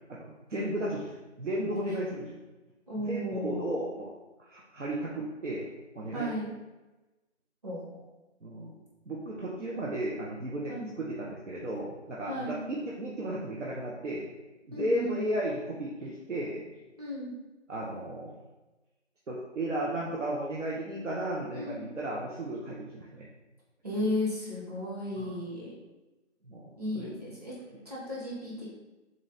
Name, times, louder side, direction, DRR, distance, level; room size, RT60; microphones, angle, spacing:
voice 1, 0.1-1.1 1.4-2.4 3.0-4.1 4.4-5.7 5.9-6.3 8.4-8.7 9.1-14.2 14.7-16.6 17.7-18.3 19.3-23.3 25.2-25.4 26.4-27.1, right 1 dB, 75° right, -5 dB, 0.9 m, -34 dB
voice 2, 2.9-3.7 6.1-6.5 7.6-8.0 10.7-10.9 12.3-12.6 14.7-15.2 17.0-17.3 21.5-21.8 23.8-25.7 26.8-27.5 27.8-28.7, left 1 dB, 30° right, -8 dB, 1.4 m, -34 dB
3.8 x 3.2 x 4.0 m, 1.1 s
figure-of-eight pair, 175°, 37 cm